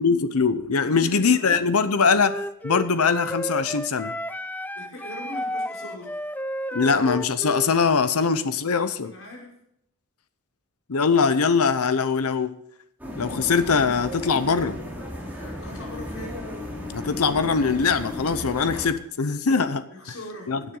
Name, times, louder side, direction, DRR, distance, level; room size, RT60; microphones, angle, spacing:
voice 1, 0.0-4.1 6.8-9.1 10.9-12.6 13.2-14.8 16.9-19.8 20.5-20.6, left 5 dB, 85° left, 12 dB, 0.8 m, -22 dB
voice 2, 0.8-1.7 4.7-6.2 6.7-6.9 8.2-8.3 9.0-9.6 15.4-16.4 19.9-20.6, left 1 dB, 65° left, -2 dB, 5.7 m, -40 dB
Wind instrument woodwind instrument, 2.2-7.7, equal, 10° left, 0.4 m, -32 dB
sound 1, 13.0-18.9, left 1 dB, 10° right, 3.6 m, -35 dB
17.0 x 9.9 x 3.9 m, 0.73 s
head